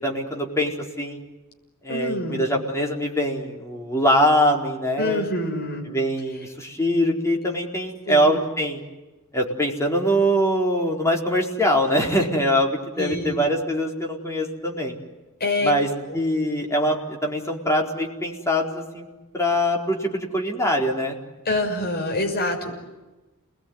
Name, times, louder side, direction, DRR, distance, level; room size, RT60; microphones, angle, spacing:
voice 1, 0.0-1.2 1.8-5.3 5.9-8.8 9.3-14.9 15.6-19.1 19.3-21.2, equal, 15° left, 0 dB, 4.4 m, -23 dB
voice 2, 1.9-2.4 5.0-5.9 8.1-8.4 13.0-13.4 15.4-15.7 16.1-16.2 21.4-22.7, left 1 dB, 45° left, 2 dB, 6.3 m, -26 dB
29.5 x 21.0 x 9.6 m, 1.1 s
head